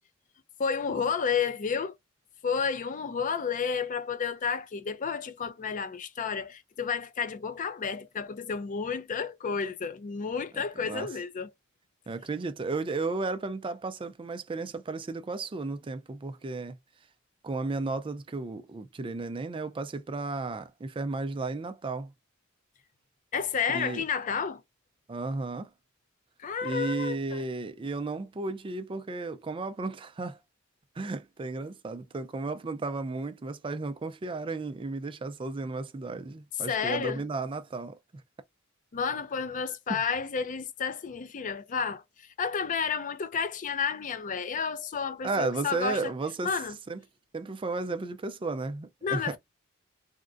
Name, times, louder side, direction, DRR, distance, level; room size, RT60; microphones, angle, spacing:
voice 1, 0.6-1.9 2.4-11.5 23.3-24.6 26.4-27.4 36.7-37.2 38.9-46.1 46.4-46.8 49.0-49.4, left 6 dB, 40° left, 0.4 m, -31 dB
voice 2, 10.5-11.1 12.1-16.8 17.4-22.1 23.7-24.0 25.1-25.7 26.6-30.4 31.0-38.0 39.9-40.0 45.2-46.5 46.9-47.0 47.3-49.4, right 3 dB, 25° right, 0.4 m, -34 dB
3.5 x 2.1 x 2.5 m
head